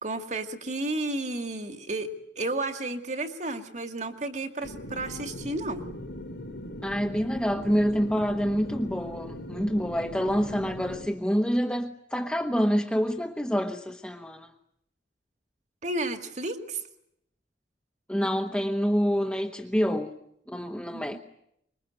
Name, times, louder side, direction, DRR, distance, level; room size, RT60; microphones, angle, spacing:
voice 1, 0.0-2.1 2.4-5.9 15.8-16.8 20.9-21.2, right 2 dB, 40° right, 2.2 m, -32 dB
sound 1, 4.6-11.1, left 1 dB, 90° left, 3.9 m, -40 dB
voice 2, 6.8-14.5 18.1-20.1 20.5-21.2, equal, 5° left, 1.1 m, -27 dB
25.5 x 23.0 x 9.1 m
head